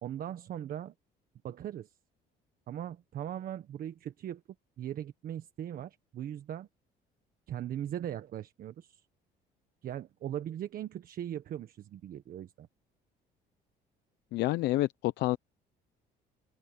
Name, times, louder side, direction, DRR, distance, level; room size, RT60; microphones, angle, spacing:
voice 1, 0.0-0.9 1.4-1.9 2.7-4.4 4.8-6.7 7.5-9.0 9.8-12.7, right 11 dB, 60° right, 1.4 m, -39 dB
voice 2, 14.3-15.4, left 17 dB, 80° left, 0.8 m, -28 dB
open air
cardioid pair, 110°, 17 cm